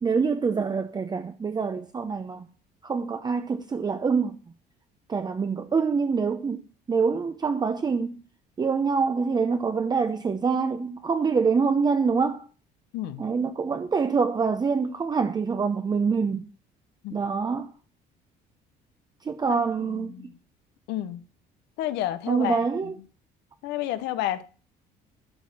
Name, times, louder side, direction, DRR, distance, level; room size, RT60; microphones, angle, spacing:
voice 1, 0.0-2.5 2.8-4.4 5.1-8.2 8.6-12.4 13.2-16.5 17.1-17.7 19.2-20.2 22.3-23.0, right 5 dB, 25° right, 0.6 m, -25 dB
voice 2, 12.9-13.2 17.0-17.2 19.5-19.6 19.9-20.3 20.9-21.2 21.8-22.6 23.6-24.4, left 13 dB, 90° left, 0.7 m, -30 dB
12.0 x 4.1 x 7.2 m
cardioid pair, 110°, 17 cm